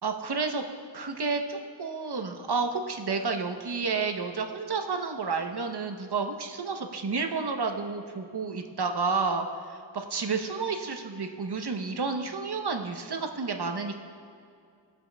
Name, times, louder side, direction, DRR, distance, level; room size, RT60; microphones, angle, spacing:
voice 1, 0.0-0.6 0.9-14.0, right 4 dB, 60° right, 4 dB, 0.9 m, -30 dB
18.0 x 6.2 x 2.2 m, 2.3 s
wide cardioid pair, 40°, 45 cm